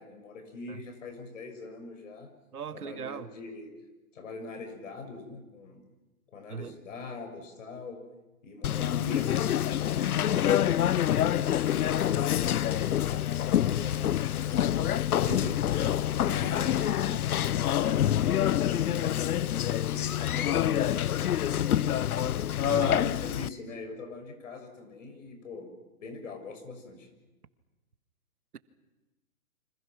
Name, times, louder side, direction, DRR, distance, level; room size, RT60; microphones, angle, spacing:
voice 1, 0.0-2.3 2.7-3.8 4.1-5.8 6.3-8.0 8.4-10.7 11.1-14.9 15.3-18.0 18.6-22.4 22.8-25.7 26.0-27.1, left 3 dB, 60° left, 6.8 m, -43 dB
voice 2, 2.5-3.3 6.5-6.8 15.2-15.6 22.6-23.1, right 7 dB, 90° right, 1.7 m, -37 dB
Conversation, 8.6-23.5, left 11 dB, 75° left, 0.8 m, -26 dB
28.5 x 26.0 x 6.1 m
hypercardioid pair, 165°, 44 cm